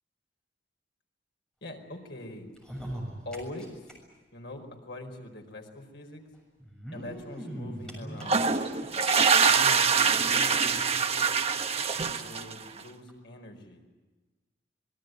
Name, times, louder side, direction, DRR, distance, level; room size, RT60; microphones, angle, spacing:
voice 1, 1.6-2.5 3.2-3.8 4.3-6.2 6.9-8.5 9.4-11.3 12.0-13.8, left 1 dB, 70° left, 3 dB, 4.8 m, -43 dB
sound 1, 2.5-3.9 4.2-4.3 4.5-4.6 5.6-5.7 6.6-8.9 9.5-9.6 9.9-10.0 10.4-11.4 11.7-11.8 12.2-12.3 13.1-13.2, equal, 5° left, 6.8 m, -40 dB
sound 2, 8.2-12.8, right 6 dB, 35° right, 0.9 m, -24 dB
25.0 x 21.0 x 9.3 m, 1.2 s
head